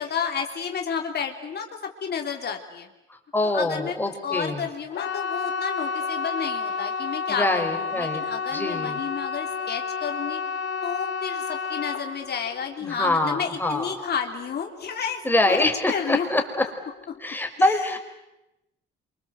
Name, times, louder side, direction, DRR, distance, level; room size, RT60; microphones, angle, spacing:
voice 1, 0.0-2.9 3.4-4.0 4.2-7.7 7.9-10.4 10.8-15.2 15.5-16.3 17.1-17.2 17.7-17.9, left 7 dB, 55° left, 3 dB, 3.0 m, -31 dB
voice 2, 3.3-4.6 7.3-8.2 8.5-9.0 12.8-14.1 15.2-16.6 17.2-18.0, left 2 dB, 10° left, 4 dB, 4.8 m, -24 dB
sound 1, 4.9-15.8 16.0-16.6 17.0-17.1, left 5 dB, 75° left, 1.6 m, -31 dB
27.0 x 25.5 x 7.9 m, 0.92 s
cardioid pair, 90°, 20 cm